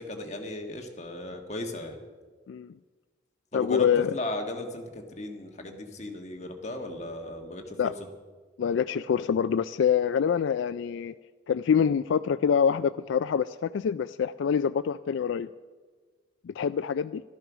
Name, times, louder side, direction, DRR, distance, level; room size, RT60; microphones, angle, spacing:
voice 1, 0.0-2.0 3.5-7.9, left 1 dB, 35° left, 1.5 m, -36 dB
voice 2, 3.5-4.1 7.8-7.9 8.6-11.1 11.5-15.5 16.4-17.2, left 7 dB, 85° left, 0.3 m, -25 dB
14.0 x 12.5 x 6.1 m
head